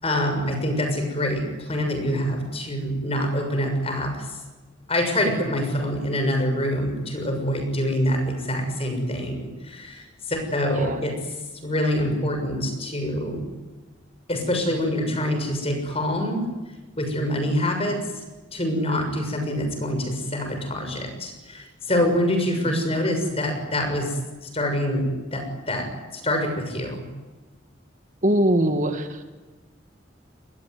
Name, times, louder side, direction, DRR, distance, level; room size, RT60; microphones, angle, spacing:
voice 1, 0.0-4.4 4.9-11.2 11.6-13.5 14.3-16.5 17.0-18.2 18.5-27.0, equal, 30° left, 5 dB, 6.8 m, -25 dB
voice 2, 28.2-29.3, right 1 dB, 40° right, 6 dB, 1.9 m, -22 dB
26.0 x 21.5 x 9.6 m, 1.2 s
head